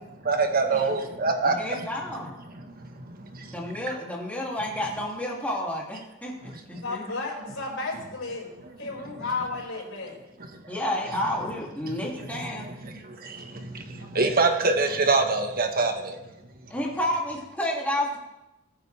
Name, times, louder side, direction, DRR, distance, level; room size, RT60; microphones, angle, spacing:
voice 1, 0.2-1.9 2.4-3.9 6.4-6.8 8.6-8.7 9.0-9.2 10.4-10.8 11.1-11.2 11.5-11.6 11.8-16.7, right 3 dB, 45° right, 1.4 m, -27 dB
voice 2, 1.5-2.3 3.5-7.0 10.7-12.7 16.7-18.2, left 1 dB, 5° left, 2.7 m, -30 dB
voice 3, 6.8-8.5 8.8-10.2 14.0-14.2, left 3 dB, 75° left, 5.7 m, -33 dB
20.5 x 9.2 x 3.4 m
head